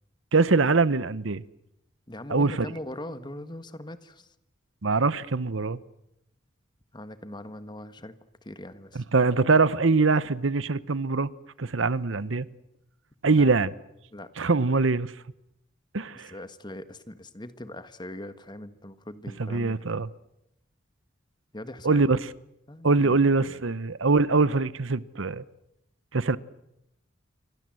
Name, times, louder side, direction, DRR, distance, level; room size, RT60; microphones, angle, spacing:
voice 1, 0.3-1.4 2.3-2.6 4.8-5.8 8.9-11.3 11.6-12.5 13.2-13.7 14.4-15.1 15.9-16.3 19.4-20.1 21.8-22.2 22.8-25.4 26.1-26.4, right 3 dB, 80° right, 1.0 m, -23 dB
voice 2, 2.1-4.3 6.9-8.1 8.4-9.0 13.3-13.4 14.1-14.3 16.3-20.0 21.5-22.1 22.7-23.6, left 1 dB, 25° left, 1.6 m, -41 dB
27.5 x 25.0 x 7.8 m
head